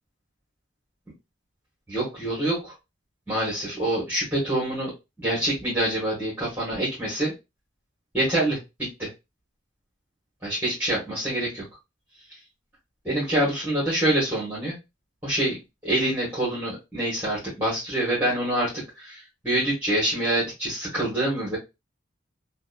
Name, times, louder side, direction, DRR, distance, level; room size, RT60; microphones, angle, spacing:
voice 1, 1.9-2.7 3.3-4.9 5.2-7.3 8.1-9.1 10.4-11.6 13.0-14.8 15.2-15.6 15.8-21.6, right 1 dB, 10° right, -8 dB, 1.1 m, -26 dB
2.8 x 2.2 x 2.4 m, 0.24 s
head